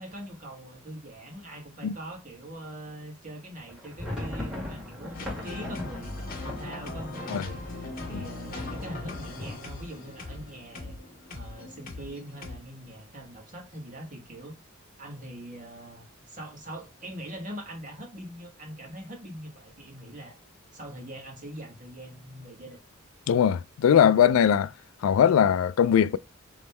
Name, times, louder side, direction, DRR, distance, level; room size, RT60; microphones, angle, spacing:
voice 1, 0.0-10.9 11.3-14.6 15.0-20.4 20.7-22.8, right 1 dB, 40° right, 1.5 m, -42 dB
sound 1, 3.6-11.4 11.7-11.8 12.1-12.3 12.8-13.3, left 1 dB, ahead, 2.0 m, -40 dB
sound 2, 5.1-12.6, left 2 dB, 45° left, 1.3 m, -40 dB
voice 2, 23.3-24.7 25.0-26.2, left 8 dB, 75° left, 0.3 m, -20 dB
3.6 x 3.0 x 4.3 m
head